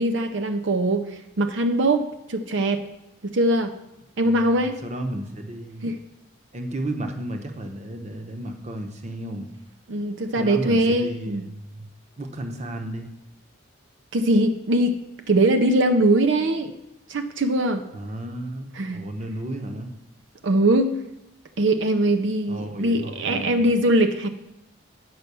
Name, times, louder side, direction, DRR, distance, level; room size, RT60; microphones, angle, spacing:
voice 1, 0.0-2.9 3.2-3.7 4.2-4.8 5.8-6.0 9.9-11.4 14.1-15.0 15.3-16.7 17.1-17.8 18.8-19.0 20.4-21.0 21.6-24.3, right 1 dB, 70° right, 7 dB, 0.6 m, -21 dB
voice 2, 4.2-5.9 6.5-9.5 10.4-11.9 12.2-13.1 17.9-19.9 22.5-23.7, right 1 dB, 35° right, 5 dB, 0.9 m, -33 dB
9.6 x 5.5 x 6.8 m, 0.91 s
head